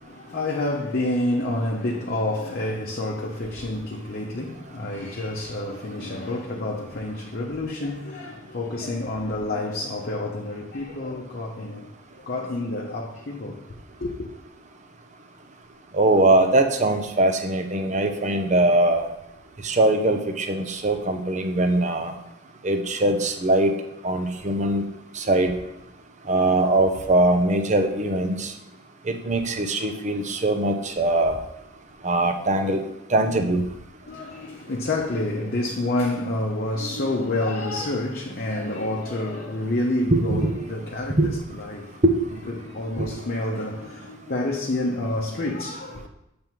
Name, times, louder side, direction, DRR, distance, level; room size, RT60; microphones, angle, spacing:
voice 1, 0.0-11.9 12.3-14.3 34.1-42.0 42.5-46.1, left 1 dB, 50° left, 0.8 m, -28 dB
voice 2, 15.9-19.1 19.6-22.1 22.6-23.7 24.0-24.9 25.1-25.6 26.3-28.5 29.1-31.4 32.0-32.8 33.1-33.6 40.1-40.5 41.2-41.3 42.0-42.1 43.0-43.1, right 2 dB, 35° right, 0.7 m, -21 dB
7.4 x 3.5 x 6.0 m
head